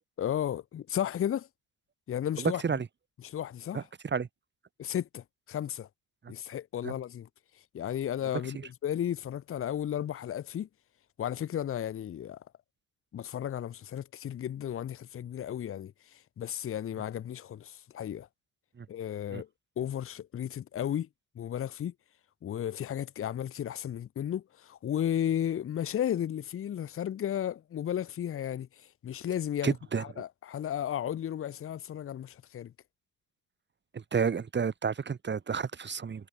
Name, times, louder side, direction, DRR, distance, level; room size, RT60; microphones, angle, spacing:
voice 1, 0.2-1.5 2.1-2.6 3.3-3.8 4.8-5.9 6.3-7.3 7.7-8.6 8.8-10.7 11.2-12.4 13.1-15.9 16.4-18.3 18.9-19.5 19.8-21.1 21.4-21.9 22.4-28.7 29.0-29.7 30.2-32.7, left 10 dB, 45° left, 0.8 m, -34 dB
voice 2, 2.4-2.9 3.7-4.3 6.2-6.3 6.8-7.0 8.2-8.7 18.7-18.9 19.3-19.4 29.6-30.2 33.9-36.3, right 6 dB, 35° right, 2.0 m, -31 dB
cardioid pair, 90°, 30 cm